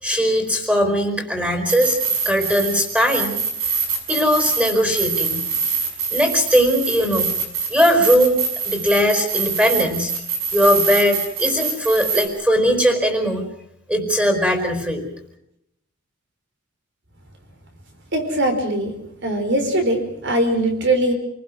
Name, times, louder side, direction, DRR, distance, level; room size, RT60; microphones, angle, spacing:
voice 1, 0.0-2.0 2.2-3.4 4.1-5.4 6.1-7.3 7.7-8.4 8.6-10.1 10.5-13.4 13.9-15.1, equal, 5° right, 6 dB, 4.7 m, -19 dB
sound 1, 1.7-12.3, right 5 dB, 75° right, 6.4 m, -25 dB
voice 2, 18.1-18.9 19.2-21.1, right 1 dB, 55° right, 5 dB, 5.0 m, -21 dB
29.0 x 19.5 x 6.3 m, 0.78 s
head